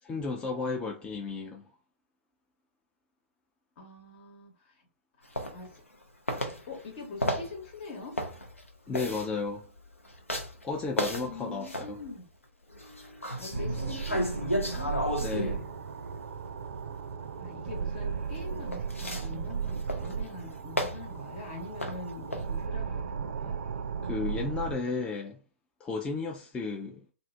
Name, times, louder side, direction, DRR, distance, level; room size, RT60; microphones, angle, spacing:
voice 1, 0.0-1.6 8.9-9.6 10.6-12.0 15.2-15.6 24.0-25.4 25.8-27.0, left 4 dB, 15° left, 0.4 m, -33 dB
voice 2, 3.8-4.7 5.5-5.8 6.4-8.1 11.1-12.3 13.4-14.9 17.4-23.6, left 3 dB, 45° left, 1.1 m, -43 dB
sound 1, 5.4-6.0 6.3-12.2 12.7-16.6 18.3-22.6, equal, 90° left, 0.6 m, -34 dB
sound 2, 13.5-24.8, right 6 dB, 65° right, 0.4 m, -36 dB
2.7 x 2.5 x 3.2 m
figure-of-eight pair, 110°, 7 cm